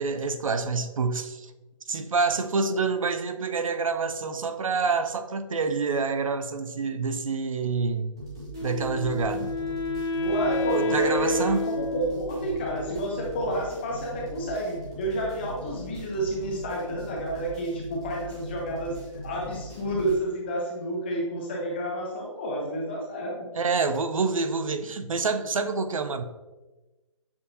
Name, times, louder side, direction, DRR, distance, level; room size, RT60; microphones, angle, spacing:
voice 1, 0.0-1.5 1.9-8.1 8.6-9.5 10.7-11.6 23.5-26.2, right 4 dB, 80° right, 9 dB, 0.5 m, -27 dB
sound 1, 8.2-20.2, equal, 10° right, 0.3 m, -40 dB
Wind instrument woodwind instrument, 8.5-13.6, left 1 dB, 55° left, 1.2 m, -30 dB
voice 2, 10.2-23.5, right 1 dB, 20° left, -1 dB, 0.7 m, -30 dB
7.0 x 2.6 x 2.7 m, 1.1 s
hypercardioid pair, 165°, 17 cm